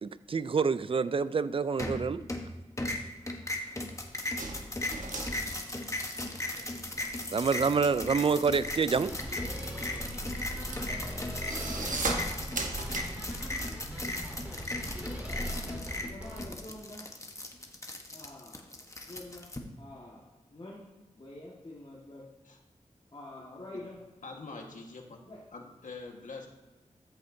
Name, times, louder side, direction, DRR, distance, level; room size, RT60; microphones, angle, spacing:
voice 1, 0.0-2.2 7.3-9.1, right 5 dB, 45° right, 15 dB, 0.4 m, -27 dB
sound 1, 1.8-2.5 2.8-19.6, left 1 dB, 25° left, 1.1 m, -37 dB
sound 2, 4.4-6.6 6.9-13.0, right 3 dB, 80° right, 1.2 m, -37 dB
sound 3, 9.0-16.4, equal, 15° right, 2.6 m, -39 dB
voice 2, 15.6-17.1 18.1-18.7 19.0-19.5 19.8-22.3 23.1-24.0 25.2-25.4, left 1 dB, 40° left, -6 dB, 1.7 m, -47 dB
voice 3, 24.2-25.2 25.5-26.5, left 3 dB, 80° left, 1 dB, 1.5 m, -44 dB
13.5 x 7.1 x 2.7 m, 1.2 s
wide cardioid pair, 65°, 13 cm